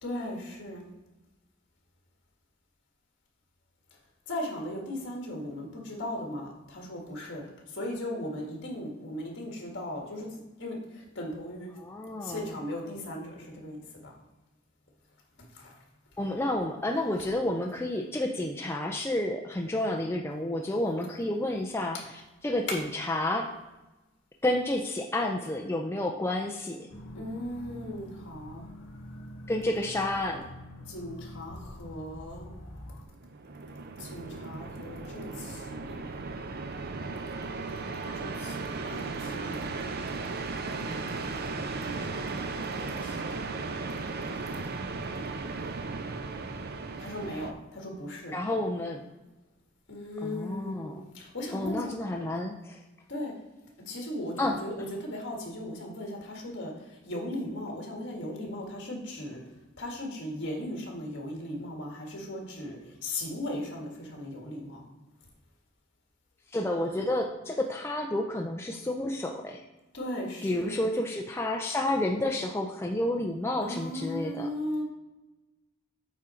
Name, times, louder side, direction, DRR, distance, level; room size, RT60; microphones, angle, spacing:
voice 1, 0.0-0.9 4.3-11.7 12.2-14.2 15.4-15.8 21.9-22.0 22.7-22.8 27.1-28.6 30.9-32.5 34.0-36.2 38.1-39.7 40.7-41.7 42.7-43.3 47.0-48.3 49.9-52.0 53.1-53.3 53.9-59.4 59.8-64.8 69.9-70.9 73.6-74.8, left 1 dB, 60° left, -1 dB, 1.8 m, -37 dB
voice 2, 11.8-12.4 16.2-22.0 22.4-23.5 24.4-26.9 29.5-30.5 48.3-49.0 50.2-51.0 51.5-52.8 54.4-54.6 66.5-69.6 70.4-74.5, left 1 dB, 10° left, 1 dB, 0.4 m, -30 dB
sound 1, 26.9-33.1, equal, 90° left, 1.1 m, -45 dB
sound 2, 33.1-47.5, right 3 dB, 50° right, 0.5 m, -36 dB
8.3 x 3.8 x 4.4 m, 1.1 s
head